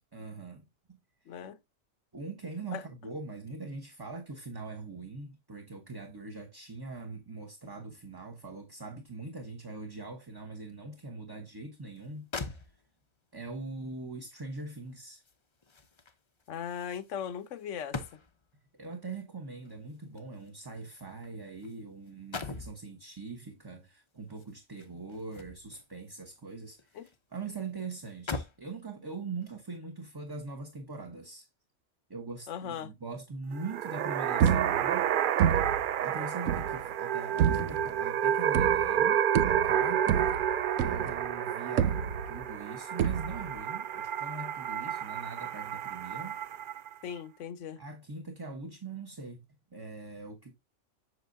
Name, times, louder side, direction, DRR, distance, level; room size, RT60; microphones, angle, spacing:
voice 1, 0.1-1.4 2.1-12.3 12.7-12.8 13.3-15.2 18.7-31.5 32.1-35.1 35.4-35.8 36.0-40.3 40.8-46.4 47.8-49.4 49.7-50.5, right 3 dB, 20° right, 1.0 m, -42 dB
voice 2, 1.3-1.6 2.7-2.8 16.5-18.0 26.9-27.1 32.5-32.9 47.0-47.8, left 8 dB, 80° left, 1.1 m, -38 dB
sound 1, 12.0-12.1 12.3-13.2 14.6-18.6 19.6-21.8 22.1-22.8 24.3-25.9 26.3-27.2 27.5-27.6 28.0-28.7 29.4-29.6, left 3 dB, 30° left, 0.6 m, -43 dB
sound 2, 33.5-46.9, right 10 dB, 60° right, 0.5 m, -30 dB
sound 3, 34.4-35.0 35.4-35.9 36.5-36.8 37.4-37.9 38.5-39.0 39.4-41.3 41.8-42.5 43.0-43.6, right 8 dB, 90° right, 1.0 m, -29 dB
7.9 x 6.6 x 2.6 m
omnidirectional pair, 1.3 m